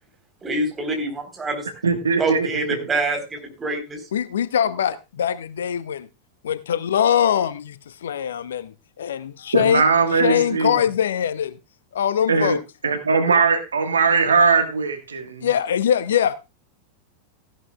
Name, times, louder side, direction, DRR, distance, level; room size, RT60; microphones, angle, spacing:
voice 1, 0.4-1.7 2.2-4.0, right 2 dB, 15° right, 3.9 m, -25 dB
voice 2, 1.8-2.6 9.5-10.8 12.3-12.6 12.8-15.5, right 5 dB, 70° right, 1.5 m, -20 dB
voice 3, 4.1-6.1 6.4-9.8 10.1-11.6 11.9-12.6 15.4-16.3, left 9 dB, 65° left, 0.7 m, -22 dB
15.5 x 11.0 x 2.3 m
figure-of-eight pair, 90°, 0 cm